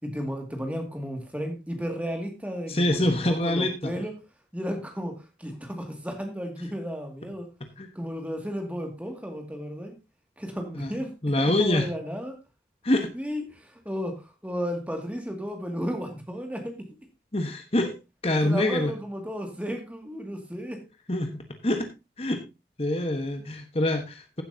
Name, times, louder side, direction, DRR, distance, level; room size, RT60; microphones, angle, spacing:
voice 1, 0.0-4.1 4.5-7.5 7.9-10.0 10.4-12.4 13.1-16.9 18.4-20.8, equal, 10° right, 2.1 m, -34 dB
voice 2, 2.7-3.9 7.8-7.9 10.7-10.9 11.2-11.9 12.8-13.1 17.3-17.9 18.2-18.9 21.1-21.9 22.2-22.4 22.8-24.4, left 1 dB, 35° left, 1.2 m, -25 dB
15.5 x 8.0 x 2.8 m
head